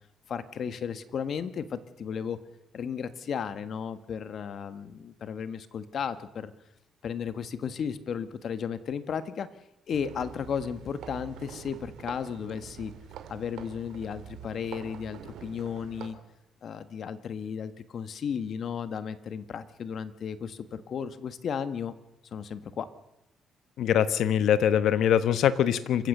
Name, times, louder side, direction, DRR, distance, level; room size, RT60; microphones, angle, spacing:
voice 1, 0.3-2.4 2.7-6.5 7.0-9.5 9.9-12.9 13.3-16.2 16.6-21.9 22.3-22.9, left 7 dB, 60° left, 12 dB, 1.5 m, -34 dB
sound 1, 9.9-16.1, right 8 dB, 80° right, 2.7 m, -45 dB
voice 2, 23.8-26.1, left 9 dB, 75° left, 13 dB, 1.2 m, -23 dB
27.5 x 15.5 x 6.7 m, 0.87 s
cardioid pair, 90°, 0 cm